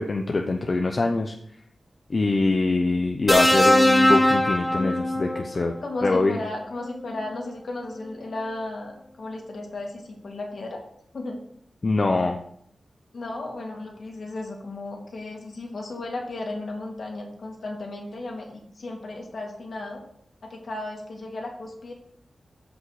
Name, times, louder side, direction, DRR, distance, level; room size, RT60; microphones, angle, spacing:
voice 1, 0.0-1.3 2.1-5.7 6.0-6.4 11.8-12.4, left 3 dB, 40° left, 3 dB, 0.8 m, -23 dB
sound 1, 3.3-5.5 6.9-7.1, left 1 dB, 5° left, 1.3 m, -20 dB
voice 2, 5.8-10.8 11.1-11.4 13.1-20.0 20.4-21.9, left 2 dB, 60° left, 1 dB, 2.5 m, -34 dB
14.5 x 5.4 x 4.8 m, 0.69 s
wide cardioid pair, 145°, 0 cm